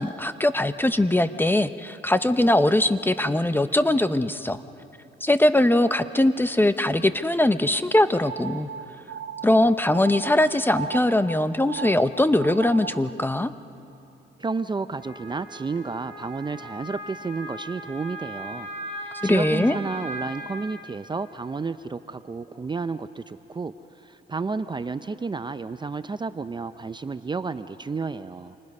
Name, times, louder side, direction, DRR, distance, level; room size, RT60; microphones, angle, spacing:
voice 1, 0.0-4.6 5.2-8.7 9.4-13.5 19.2-19.8, left 1 dB, 10° left, 11 dB, 0.8 m, -21 dB
sound 1, 8.2-13.1, right 7 dB, 90° right, 1.8 m, -37 dB
voice 2, 14.4-18.7 18.9-28.6, right 4 dB, 25° right, 11 dB, 0.6 m, -31 dB
Wind instrument woodwind instrument, 15.0-20.7, right 1 dB, 45° left, 6.5 m, -38 dB
28.0 x 25.0 x 5.4 m, 3.0 s
cardioid pair, 90°, 20 cm